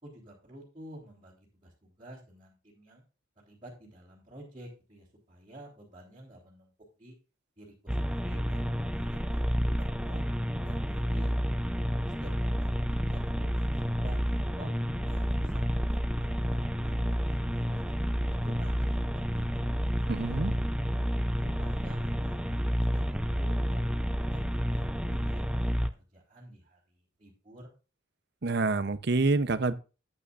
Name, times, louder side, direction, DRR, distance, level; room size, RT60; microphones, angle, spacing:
voice 1, 0.0-3.0 3.4-6.7 7.0-7.2 7.6-10.2 10.6-11.4 12.0-14.7 15.0-17.9 18.3-18.9 19.1-21.0 21.4-23.8 24.2-27.7, right 1 dB, 25° right, -7 dB, 3.7 m, -50 dB
sound 1, 7.9-25.9, equal, 5° right, 0.5 m, -30 dB
voice 2, 20.1-20.5 28.4-29.7, right 3 dB, 50° right, 14 dB, 0.7 m, -27 dB
14.0 x 9.0 x 2.5 m, 0.32 s
head